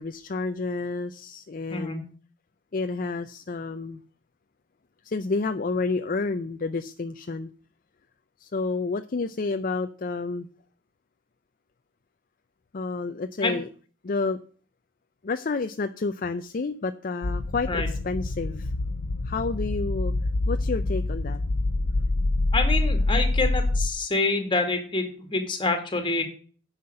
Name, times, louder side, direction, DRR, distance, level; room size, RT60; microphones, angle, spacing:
voice 1, 0.0-2.1 2.7-4.0 5.0-7.5 8.4-10.5 12.7-13.7 14.0-14.4 15.2-18.7 19.2-20.1 20.5-21.4, left 3 dB, 45° left, 9 dB, 0.5 m, -30 dB
voice 2, 1.7-2.0 13.4-13.6 17.7-17.9 22.5-26.2, left 3 dB, 25° left, 6 dB, 2.0 m, -26 dB
sound 1, 17.2-23.9, left 2 dB, 75° left, 0.8 m, -26 dB
9.4 x 5.8 x 7.7 m, 0.43 s
head